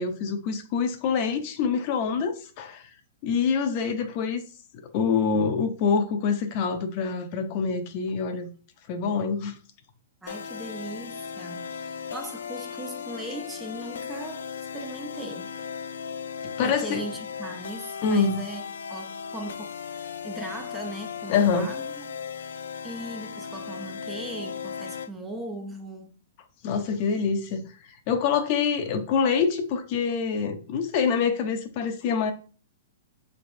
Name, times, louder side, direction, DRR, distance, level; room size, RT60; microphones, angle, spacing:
voice 1, 0.0-2.8 3.2-4.4 4.7-8.5 8.9-9.5 16.6-17.0 18.0-18.4 21.3-21.7 26.6-27.6 28.1-32.3, left 6 dB, 40° left, 0.6 m, -25 dB
voice 2, 10.2-14.5 14.7-15.5 16.6-18.6 18.9-22.1 22.4-26.1, right 1 dB, 5° right, 0.5 m, -39 dB
sound 1, 10.3-25.1, left 7 dB, 85° left, 0.3 m, -37 dB
4.8 x 3.3 x 2.6 m
hypercardioid pair, 150°, 0 cm